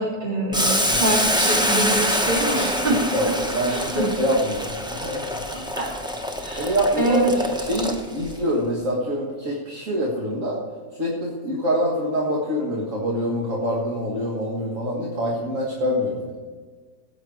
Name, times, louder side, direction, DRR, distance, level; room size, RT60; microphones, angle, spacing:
voice 1, 0.0-3.3 3.7-4.1 5.5-5.9 6.4-7.3, right 2 dB, 35° right, -5 dB, 3.9 m, -25 dB
Boiling, 0.5-8.3, equal, 5° right, 0.9 m, -25 dB
voice 2, 2.9-5.4 6.5-10.6 11.0-16.4, equal, 55° right, -3 dB, 2.2 m, -25 dB
18.0 x 8.1 x 4.8 m, 1.5 s
omnidirectional pair, 1.6 m